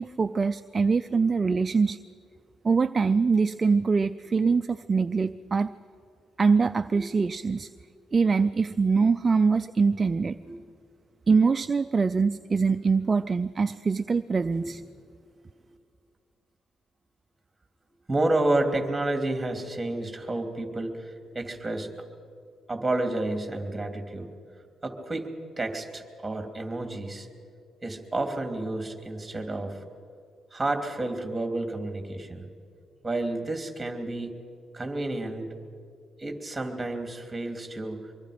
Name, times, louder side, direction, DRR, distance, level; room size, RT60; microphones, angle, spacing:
voice 1, 0.0-2.0 2.6-5.7 6.4-7.7 8.1-10.4 11.3-14.8, right 4 dB, 30° right, 11 dB, 0.5 m, -23 dB
voice 2, 18.1-21.9 22.7-24.3 24.8-25.3 25.6-27.3 27.8-29.8 30.5-32.5 33.0-34.4 34.7-35.5 36.2-38.1, right 2 dB, 15° right, 4 dB, 3.0 m, -30 dB
24.0 x 23.5 x 5.2 m, 2.3 s
cardioid pair, 90°, 0 cm